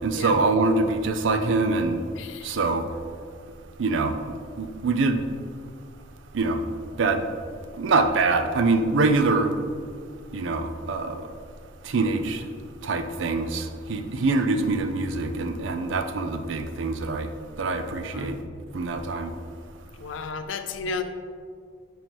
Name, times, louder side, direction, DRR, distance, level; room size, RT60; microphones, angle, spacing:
voice 1, 0.0-2.0 2.4-2.9 3.8-4.2 4.6-5.2 6.3-6.6 7.0-7.3 7.8-9.5 10.3-11.3 11.8-12.5 12.8-17.3 17.6-18.4 18.7-19.3, right 3 dB, 75° right, 7 dB, 0.5 m, -24 dB
voice 2, 2.2-2.6 18.1-18.3 20.0-21.0, left 4 dB, 75° left, 8 dB, 0.4 m, -33 dB
6.2 x 5.3 x 3.0 m, 2.1 s
head